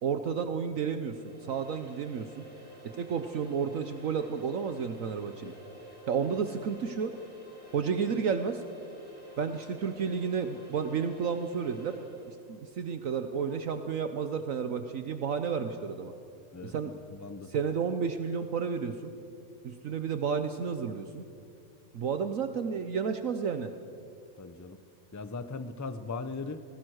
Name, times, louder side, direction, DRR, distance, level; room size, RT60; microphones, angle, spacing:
voice 1, 0.0-2.5 2.9-5.5 6.1-7.1 7.7-8.6 9.4-12.0 12.3-16.1 16.6-16.9 17.5-19.1 19.6-21.2 21.9-23.7, right 6 dB, 65° right, 8 dB, 1.3 m, -31 dB
sound 1, 0.8-12.5, right 1 dB, 15° right, 6.3 m, -50 dB
voice 2, 16.5-17.5 24.4-24.8 25.1-26.6, left 4 dB, 15° left, 11 dB, 0.6 m, -39 dB
28.0 x 20.5 x 6.4 m, 2.6 s
omnidirectional pair, 1.5 m